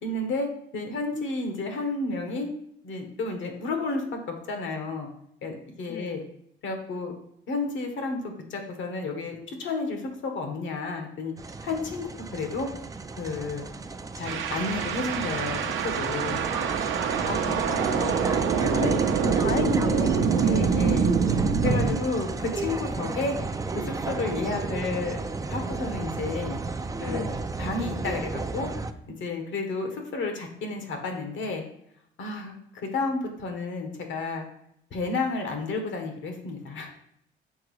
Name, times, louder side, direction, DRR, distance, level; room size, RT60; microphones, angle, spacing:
voice 1, 0.0-2.5 2.8-5.1 5.4-6.2 6.6-7.1 7.5-11.3 11.6-12.1 12.3-12.7 13.2-13.7 14.2-16.4 20.4-21.1 21.6-23.4 23.7-25.2 25.5-26.6 27.0-27.2 27.6-28.7 29.1-31.6 32.2-32.5 32.8-34.4 34.9-36.9, left 3 dB, 70° left, 4 dB, 1.4 m, -31 dB
sound 1, 11.4-28.9, right 3 dB, 15° right, 0.4 m, -33 dB
sound 2, 14.2-21.9, right 6 dB, 75° right, 0.7 m, -25 dB
voice 2, 17.3-18.2 18.6-20.8 27.1-27.5, left 6 dB, 50° left, 11 dB, 0.6 m, -34 dB
6.3 x 3.8 x 4.9 m, 0.73 s
cardioid pair, 90°, 20 cm